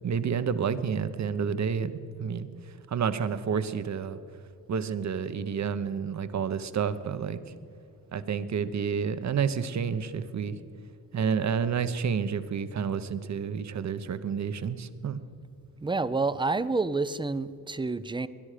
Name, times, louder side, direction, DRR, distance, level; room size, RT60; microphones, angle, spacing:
voice 1, 0.0-2.5 2.9-4.2 4.7-7.4 8.1-10.6 11.1-15.2, right 6 dB, 45° right, 13 dB, 0.8 m, -29 dB
voice 2, 15.8-18.3, right 3 dB, 10° right, 15 dB, 0.4 m, -28 dB
20.5 x 11.0 x 5.0 m, 2.6 s
cardioid pair, 110°, 41 cm